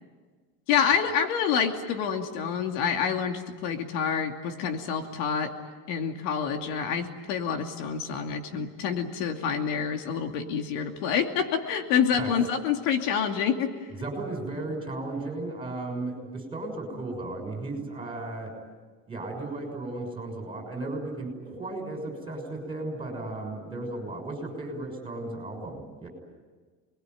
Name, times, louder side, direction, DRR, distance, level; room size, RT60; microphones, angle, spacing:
voice 1, 0.7-5.5 5.9-13.7, left 7 dB, 85° left, 5 dB, 2.7 m, -27 dB
voice 2, 14.0-18.5 19.1-26.1, right 2 dB, 10° right, 2 dB, 6.3 m, -35 dB
28.0 x 21.0 x 9.4 m, 1.4 s
cardioid pair, 160°, 45 cm